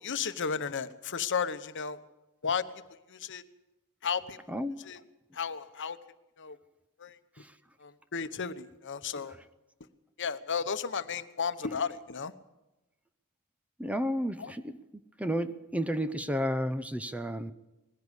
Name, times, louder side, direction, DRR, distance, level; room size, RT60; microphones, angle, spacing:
voice 1, 0.0-2.0 2.4-2.6 3.1-3.4 4.0-4.4 4.8-5.0 5.3-6.0 6.4-6.6 7.0-7.2 7.8-9.3 10.2-12.3 14.4-14.5, left 6 dB, 55° left, 1.1 m, -33 dB
voice 2, 13.8-14.6 15.2-17.5, equal, 5° right, 0.7 m, -31 dB
20.5 x 16.0 x 8.2 m
head